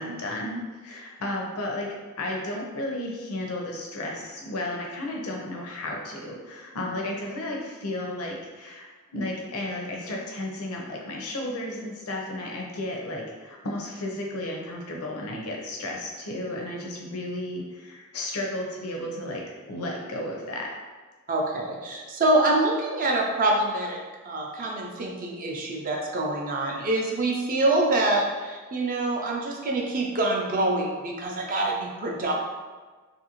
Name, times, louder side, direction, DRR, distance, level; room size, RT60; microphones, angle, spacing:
voice 1, 0.0-8.9 9.1-19.4 19.7-20.7, left 1 dB, 70° left, -1 dB, 0.6 m, -33 dB
voice 2, 21.3-24.0 24.2-32.3, right 2 dB, 40° right, -1 dB, 0.4 m, -25 dB
2.7 x 2.5 x 2.9 m, 1.4 s
head